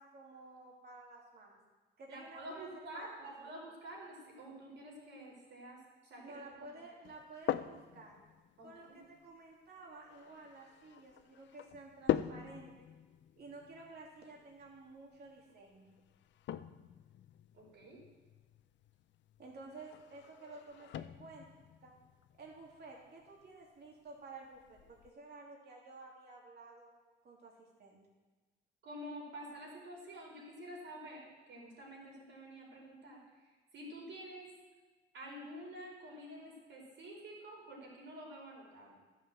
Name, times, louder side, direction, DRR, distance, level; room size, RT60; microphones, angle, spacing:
voice 1, 0.0-1.6 2.0-2.7 2.9-3.3 6.2-8.2 8.6-12.9 13.4-15.9 19.4-21.5 21.8-21.9 22.4-26.9 27.2-28.0, right 3 dB, 55° right, -2 dB, 2.9 m, -53 dB
voice 2, 2.1-6.7 8.6-9.0 17.5-18.0 28.8-34.5 35.1-39.0, right 1 dB, 70° right, -3 dB, 5.3 m, -49 dB
sound 1, 7.0-25.1, left 11 dB, 65° left, 0.5 m, -44 dB
12.0 x 7.5 x 7.7 m, 1.2 s
cardioid pair, 90°, 20 cm